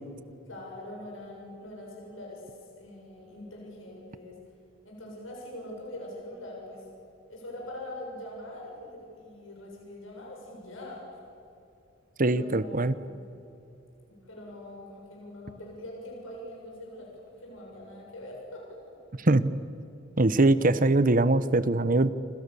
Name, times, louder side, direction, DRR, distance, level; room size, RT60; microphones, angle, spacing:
voice 1, 0.5-2.4 2.8-4.4 4.9-6.9 7.3-11.0 12.2-13.1 14.1-17.1 17.4-18.8 20.7-20.8, left 1 dB, 80° left, -2 dB, 7.1 m, -43 dB
voice 2, 12.2-12.9 19.2-19.5 20.2-22.1, right 2 dB, 45° right, 15 dB, 1.0 m, -22 dB
28.0 x 26.5 x 7.0 m, 2.7 s
head